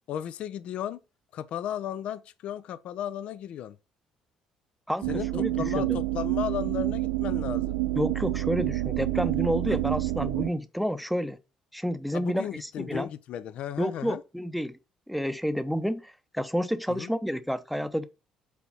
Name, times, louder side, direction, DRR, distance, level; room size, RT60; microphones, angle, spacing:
voice 1, 0.1-1.0 1.3-3.8 5.1-7.8 9.7-9.8 12.1-14.2 16.9-17.1, left 10 dB, 55° left, 0.6 m, -35 dB
sound 1, 5.0-10.5, right 18 dB, 65° right, 0.3 m, -28 dB
voice 2, 5.3-6.0 7.9-11.4 11.7-13.1 13.8-14.8 15.1-18.1, equal, ahead, 0.8 m, -30 dB
8.3 x 3.9 x 6.0 m
figure-of-eight pair, 50°, 2 cm